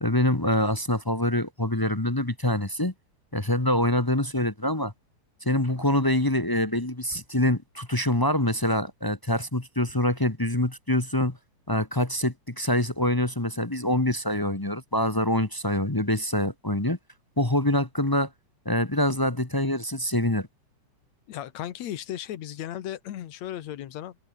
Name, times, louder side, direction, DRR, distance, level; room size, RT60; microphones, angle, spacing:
voice 1, 0.0-2.9 3.3-4.9 5.4-11.4 11.7-17.0 17.4-18.3 18.6-20.5, left 1 dB, 20° left, 0.5 m, -25 dB
voice 2, 21.3-24.2, left 11 dB, 70° left, 2.6 m, -35 dB
omnidirectional pair, 3.3 m